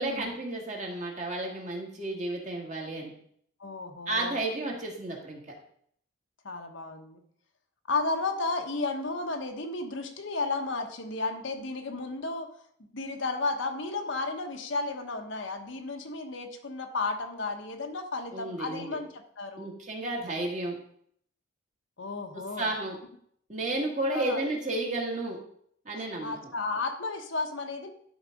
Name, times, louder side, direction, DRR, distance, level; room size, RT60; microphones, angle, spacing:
voice 1, 0.0-3.1 4.1-5.4 18.3-19.0 19.6-20.8 22.3-23.0 23.5-25.4 25.9-26.3, right 2 dB, 35° right, -1 dB, 1.9 m, -32 dB
voice 2, 3.6-4.4 6.4-7.2 7.9-12.5 12.9-19.7 22.0-22.7 24.1-24.4 26.2-27.9, left 3 dB, 65° left, 4 dB, 1.1 m, -33 dB
11.5 x 4.0 x 5.2 m, 0.65 s
head